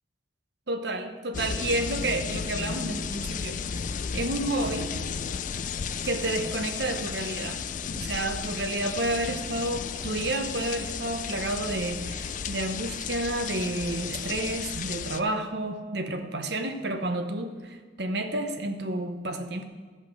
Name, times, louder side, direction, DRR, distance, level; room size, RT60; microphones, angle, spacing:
voice 1, 0.7-3.8 4.1-4.9 6.0-7.6 7.9-19.6, right 2 dB, 55° right, 6 dB, 0.9 m, -30 dB
sound 1, 1.3-15.2, left 6 dB, 40° left, 0.3 m, -34 dB
13.5 x 5.5 x 6.4 m, 1.4 s
head